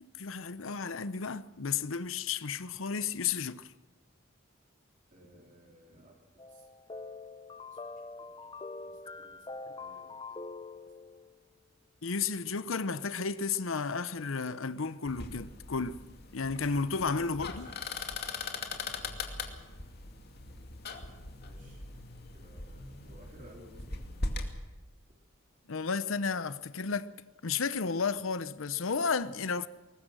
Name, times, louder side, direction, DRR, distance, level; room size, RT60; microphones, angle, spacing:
voice 1, 0.0-3.7 12.0-16.0 16.3-17.7 25.7-27.1 27.4-29.7, left 5 dB, 80° left, 0.8 m, -33 dB
voice 2, 5.1-6.9 7.7-8.0 8.4-8.5 8.8-10.6 16.7-18.0 21.4-21.8 22.3-24.0, equal, 40° right, 3.3 m, -57 dB
sound 1, 6.4-11.4, left 3 dB, 25° left, 0.6 m, -44 dB
sound 2, 15.1-24.5, left 3 dB, 50° left, 2.5 m, -40 dB
22.5 x 19.5 x 6.3 m
head